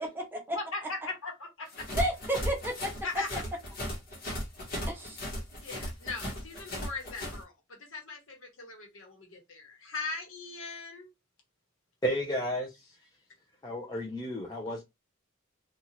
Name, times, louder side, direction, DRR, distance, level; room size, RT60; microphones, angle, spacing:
voice 1, 0.0-0.6 1.9-2.9 4.9-5.4, right 1 dB, 10° right, 0.9 m, -32 dB
voice 2, 0.5-1.9 3.0-3.4 5.6-11.1, left 3 dB, 70° left, 1.1 m, -39 dB
sound 1, 1.7-7.4, equal, 45° left, 1.1 m, -36 dB
voice 3, 12.0-13.0 13.6-14.8, equal, 20° left, 0.5 m, -32 dB
2.7 x 2.4 x 2.9 m
head